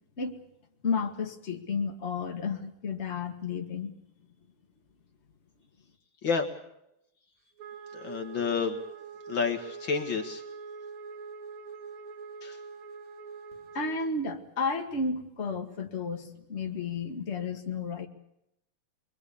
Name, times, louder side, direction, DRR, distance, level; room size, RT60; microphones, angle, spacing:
voice 1, 0.8-3.9 13.7-18.1, left 4 dB, 30° left, 2 dB, 2.2 m, -32 dB
Wind instrument woodwind instrument, 7.6-14.0, right 5 dB, 75° right, 2.9 m, -44 dB
voice 2, 7.9-8.8 9.3-10.4 12.4-12.5, left 5 dB, 60° left, 5 dB, 2.5 m, -29 dB
27.0 x 22.5 x 7.1 m, 0.82 s
omnidirectional pair, 2.4 m